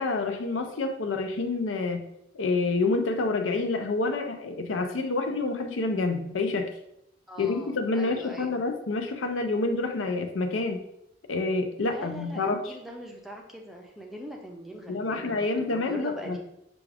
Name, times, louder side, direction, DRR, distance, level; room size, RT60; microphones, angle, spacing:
voice 1, 0.0-2.0 2.3-6.7 7.4-10.8 11.3-12.7 14.9-16.4, left 3 dB, 80° left, 6 dB, 0.5 m, -28 dB
voice 2, 7.3-8.6 11.8-16.4, equal, ahead, 0 dB, 0.5 m, -42 dB
6.0 x 2.4 x 3.4 m, 0.79 s
head